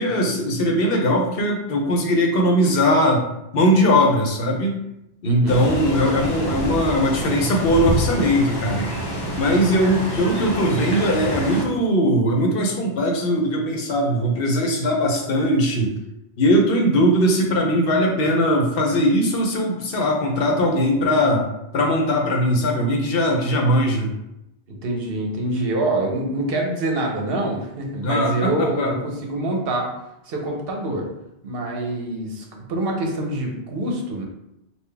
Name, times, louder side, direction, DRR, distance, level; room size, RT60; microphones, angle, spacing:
voice 1, 0.0-3.2 3.5-4.8 5.2-8.9 9.4-15.9 16.4-21.4 21.7-24.1 28.0-29.0, equal, 65° left, 1 dB, 0.9 m, -20 dB
voice 2, 5.2-5.6 24.7-29.9 30.3-31.1 31.4-34.2, right 1 dB, 65° right, 1 dB, 0.9 m, -25 dB
sound 1, 5.5-11.6, equal, 30° left, 0.5 m, -27 dB
3.7 x 2.3 x 3.3 m, 0.85 s
omnidirectional pair, 1.1 m